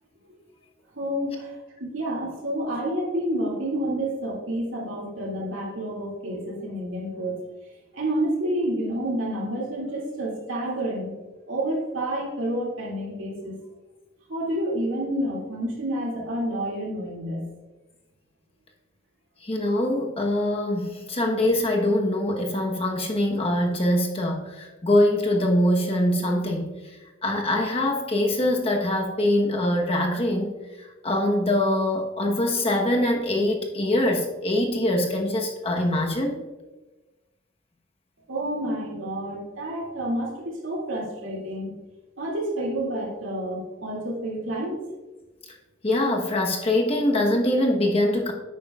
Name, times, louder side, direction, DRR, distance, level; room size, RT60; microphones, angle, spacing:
voice 1, 1.0-1.5 1.8-7.4 7.9-11.1 11.5-13.6 14.3-17.5 38.3-41.7 42.2-44.8, right 1 dB, 80° right, -3 dB, 2.4 m, -29 dB
voice 2, 19.4-26.7 27.2-30.5 31.0-36.4 45.8-48.3, left 1 dB, 30° left, 1 dB, 1.1 m, -23 dB
10.0 x 9.0 x 2.4 m, 1.2 s
head